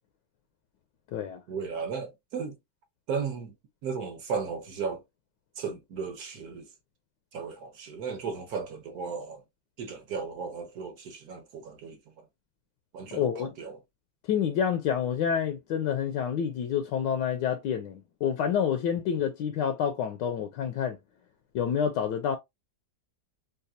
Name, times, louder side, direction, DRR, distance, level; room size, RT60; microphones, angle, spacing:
voice 1, 1.5-2.6 3.1-3.5 3.8-5.0 5.6-6.7 7.3-9.4 9.8-12.1 12.9-13.8, right 5 dB, 60° right, 1.2 m, -35 dB
voice 2, 13.1-13.5 14.3-21.0 21.5-22.4, left 8 dB, 80° left, 1.2 m, -28 dB
4.0 x 2.3 x 2.6 m
omnidirectional pair, 2.0 m